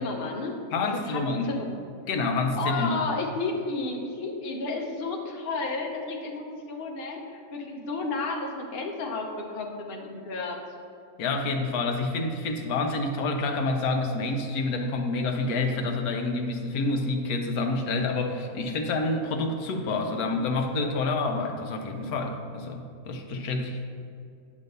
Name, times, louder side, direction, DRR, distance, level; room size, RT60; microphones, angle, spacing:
voice 1, 0.0-0.5 0.9-1.7 2.6-10.6, left 3 dB, 50° left, 1 dB, 0.9 m, -32 dB
voice 2, 0.7-1.5 2.1-3.0 11.2-23.8, left 3 dB, 80° left, 3 dB, 1.2 m, -28 dB
9.2 x 3.1 x 6.6 m, 2.4 s
omnidirectional pair, 1.6 m